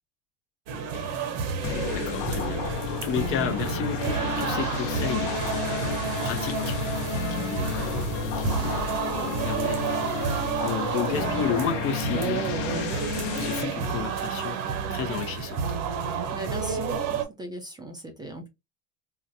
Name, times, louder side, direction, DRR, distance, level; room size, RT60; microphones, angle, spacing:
sound 1, 0.7-17.2, right 6 dB, 55° right, 0.9 m, -30 dB
voice 1, 0.9-1.3 1.9-2.6 2.9-5.4 5.6-6.8 7.3-8.1 8.4-13.0 13.4-14.6 14.9-15.6, left 8 dB, 35° left, 0.5 m, -33 dB
sound 2, 1.6-13.6, left 8 dB, 70° left, 0.7 m, -32 dB
voice 2, 16.0-18.5, right 1 dB, 10° right, 0.5 m, -39 dB
3.9 x 2.1 x 2.7 m
supercardioid pair, 125°, 37 cm